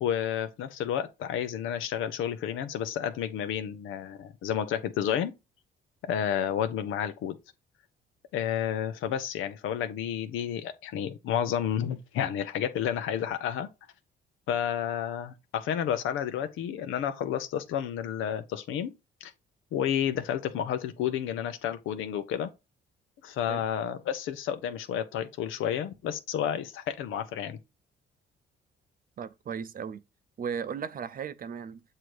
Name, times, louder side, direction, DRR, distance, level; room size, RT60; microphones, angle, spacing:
voice 1, 0.0-5.3 6.0-7.3 8.3-13.7 14.5-18.9 19.2-19.3 19.7-22.5 23.2-27.6, left 9 dB, 90° left, 0.8 m, -31 dB
voice 2, 29.2-30.0 30.4-31.8, right 7 dB, 45° right, 0.6 m, -36 dB
7.7 x 2.8 x 4.7 m
cardioid pair, 90°, 20 cm